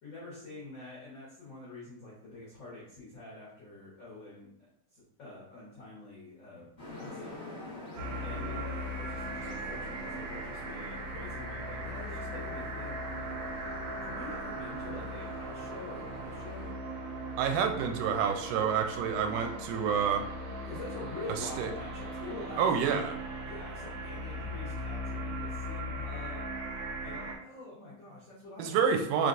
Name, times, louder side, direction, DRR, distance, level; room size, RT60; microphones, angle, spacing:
voice 1, 0.0-7.4 8.2-8.6 8.9-13.0 14.0-16.7 20.6-23.1 23.5-26.5 27.0-28.9, left 2 dB, 85° left, -7 dB, 1.0 m, -46 dB
sound 1, 6.8-16.7, left 2 dB, 50° left, 0.7 m, -46 dB
sound 2, 8.0-27.3, right 1 dB, 65° right, 1.8 m, -39 dB
voice 2, 17.4-20.2 21.6-21.7 22.6-23.1 28.6-29.3, right 7 dB, 80° right, 5 dB, 2.1 m, -28 dB
5.0 x 3.2 x 2.5 m, 0.71 s
omnidirectional pair, 3.9 m